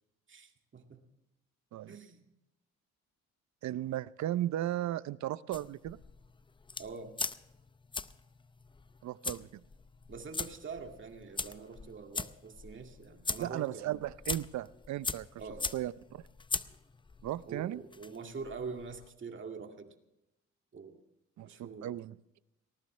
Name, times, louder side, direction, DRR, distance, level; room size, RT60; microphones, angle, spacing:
voice 1, 0.3-1.0 1.9-2.2 6.8-7.1 10.1-14.0 15.4-15.7 17.5-19.9 20.7-21.0 21.4-22.0, right 5 dB, 40° right, 4 dB, 2.2 m, -44 dB
voice 2, 3.6-6.0 9.0-9.6 13.4-15.4 15.7-16.2 17.2-17.8 21.4-22.2, right 13 dB, 65° right, 18 dB, 0.6 m, -36 dB
sound 1, 5.5-19.1, left 4 dB, 15° left, 0.6 m, -41 dB
19.5 x 19.0 x 3.2 m, 0.91 s
cardioid pair, 90°, 30 cm